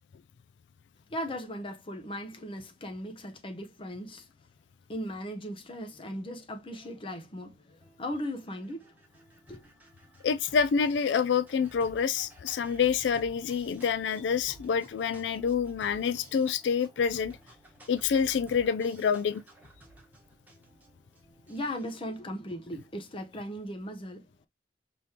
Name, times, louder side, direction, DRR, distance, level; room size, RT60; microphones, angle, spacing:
voice 1, 1.1-4.3 4.9-8.8 9.5-9.7 21.5-24.5, equal, 30° left, 0.8 m, -38 dB
sound 1, 7.8-23.3, right 1 dB, 10° right, 1.2 m, -55 dB
voice 2, 10.2-17.4 17.9-19.4, left 6 dB, 90° left, 0.3 m, -27 dB
5.3 x 3.3 x 2.8 m
head